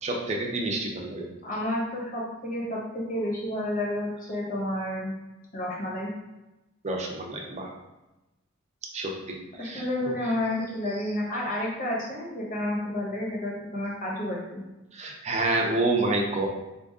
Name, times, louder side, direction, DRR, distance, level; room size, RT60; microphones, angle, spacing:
voice 1, 0.0-1.2 6.8-7.7 8.9-10.1 14.9-16.5, right 2 dB, 35° right, 0 dB, 0.7 m, -28 dB
voice 2, 1.4-5.1 5.5-6.1 9.6-14.6, left 1 dB, 40° left, -3 dB, 1.1 m, -30 dB
4.3 x 2.6 x 3.6 m, 1.0 s
head